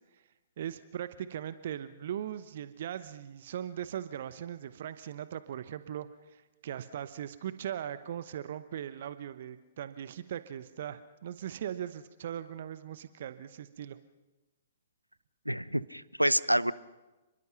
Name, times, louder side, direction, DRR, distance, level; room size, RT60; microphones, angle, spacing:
voice 1, 0.6-14.0, right 10 dB, 50° right, 13 dB, 1.0 m, -39 dB
voice 2, 15.5-16.7, equal, 90° right, 18 dB, 0.8 m, -27 dB
29.5 x 22.0 x 5.9 m, 1.1 s
figure-of-eight pair, 115°, 0 cm